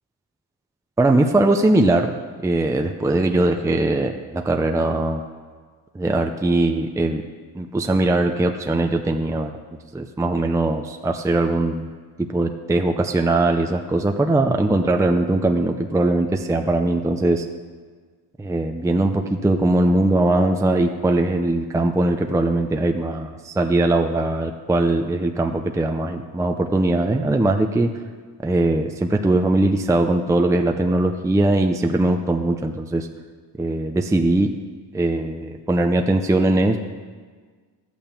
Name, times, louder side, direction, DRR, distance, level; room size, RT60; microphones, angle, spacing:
voice 1, 1.0-2.1 2.4-5.2 5.9-7.2 7.6-9.5 9.9-11.9 12.2-17.5 18.4-27.9 28.4-33.1 33.6-34.5 34.9-36.8, right 2 dB, 10° right, 4 dB, 0.6 m, -20 dB
12.5 x 8.8 x 7.0 m, 1.5 s
cardioid pair, 115°, 41 cm